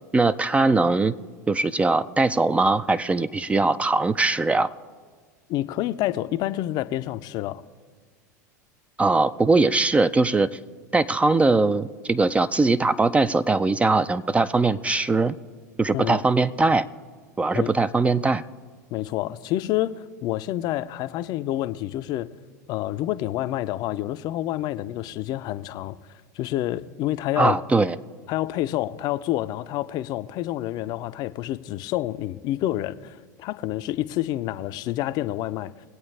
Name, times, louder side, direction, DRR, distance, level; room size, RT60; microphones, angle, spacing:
voice 1, 0.1-1.1 1.5-4.7 9.0-10.5 10.9-15.3 15.8-16.9 17.4-18.4 27.4-28.0, right 3 dB, 15° right, 0.4 m, -21 dB
voice 2, 5.5-7.6 15.9-16.2 17.5-17.7 18.9-22.3 22.7-26.0 26.4-27.6 28.3-35.7, left 14 dB, 45° left, 0.5 m, -28 dB
22.0 x 8.6 x 3.3 m
hypercardioid pair, 85°, 10 cm